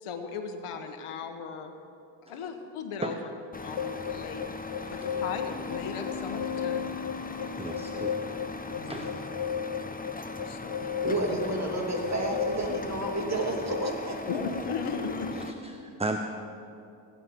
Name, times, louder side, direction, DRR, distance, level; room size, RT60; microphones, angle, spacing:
voice 1, 0.0-1.7 2.3-3.2 3.6-4.4 4.9-6.9 8.7-9.2 10.4-11.0 14.3-15.3, left 5 dB, 90° left, 1.3 m, -36 dB
Truck, 3.5-15.5, left 2 dB, 15° left, 1.0 m, -39 dB
sound 1, 3.8-13.9, left 8 dB, 50° left, 0.5 m, -35 dB
voice 2, 7.6-8.2 8.8-9.1 15.6-16.2, right 2 dB, 10° right, 0.9 m, -34 dB
voice 3, 11.0-14.4, right 1 dB, 30° right, 2.6 m, -30 dB
17.5 x 9.7 x 5.3 m
cardioid pair, 70°, 49 cm